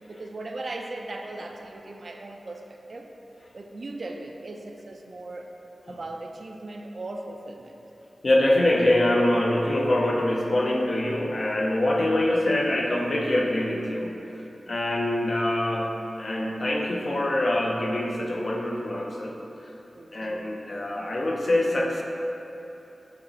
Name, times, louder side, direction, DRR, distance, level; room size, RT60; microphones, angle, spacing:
voice 1, 0.1-3.1 3.5-5.5 5.9-7.8 19.9-20.6, right 2 dB, 55° right, 3 dB, 0.3 m, -38 dB
voice 2, 8.2-14.2 14.7-19.4 20.1-22.0, left 1 dB, 50° left, 0 dB, 0.5 m, -24 dB
6.1 x 2.9 x 2.8 m, 2.9 s
wide cardioid pair, 90°, 0 cm